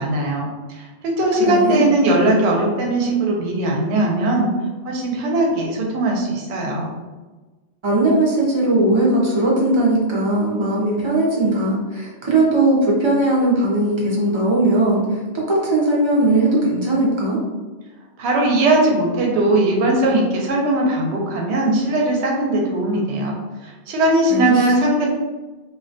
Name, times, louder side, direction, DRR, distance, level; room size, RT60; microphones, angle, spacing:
voice 1, 0.0-4.5 4.8-6.9 18.2-23.4 23.6-25.1, right 2 dB, 70° right, -1 dB, 0.8 m, -19 dB
voice 2, 1.5-1.9 7.8-17.4 24.3-24.6, right 2 dB, 50° right, -4 dB, 0.3 m, -18 dB
2.3 x 2.1 x 2.6 m, 1.2 s
omnidirectional pair, 1.2 m